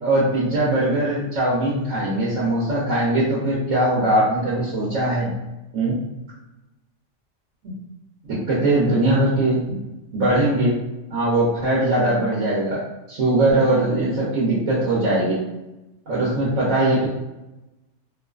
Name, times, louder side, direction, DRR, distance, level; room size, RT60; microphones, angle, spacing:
voice 1, 0.0-5.3 5.7-6.0 8.2-9.8 10.1-10.7 11.1-12.8 13.1-15.4 16.1-17.1, right 1 dB, 75° right, -7 dB, 1.1 m, -20 dB
2.5 x 2.4 x 2.3 m, 0.99 s
omnidirectional pair, 1.3 m